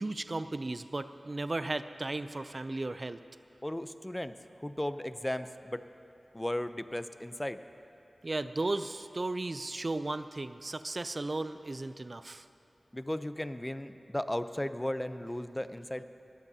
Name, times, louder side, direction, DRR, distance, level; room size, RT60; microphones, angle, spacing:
voice 1, 0.0-3.2 8.2-12.5, right 2 dB, 45° right, 11 dB, 0.4 m, -35 dB
voice 2, 3.6-4.3 4.6-5.8 6.3-7.6 12.9-16.0, left 1 dB, 15° left, 11 dB, 0.5 m, -35 dB
20.5 x 14.5 x 2.8 m, 2.7 s
cardioid pair, 50°, 0 cm